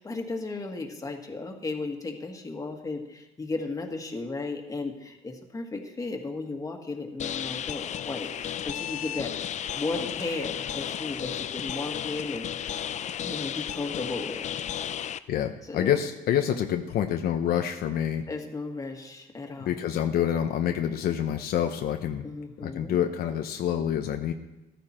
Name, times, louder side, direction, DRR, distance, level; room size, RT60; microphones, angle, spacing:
voice 1, 0.0-9.3 9.7-12.8 13.2-14.4 15.6-15.9 16.5-16.7 18.3-19.8 22.2-23.0, left 3 dB, 20° left, 3 dB, 1.9 m, -35 dB
sound 1, 7.2-15.2, left 10 dB, 45° left, 0.5 m, -33 dB
voice 2, 15.3-18.2 19.7-22.2 22.6-24.3, left 10 dB, 65° left, 5 dB, 0.9 m, -27 dB
14.5 x 13.0 x 4.4 m, 1.0 s
cardioid pair, 110°, 17 cm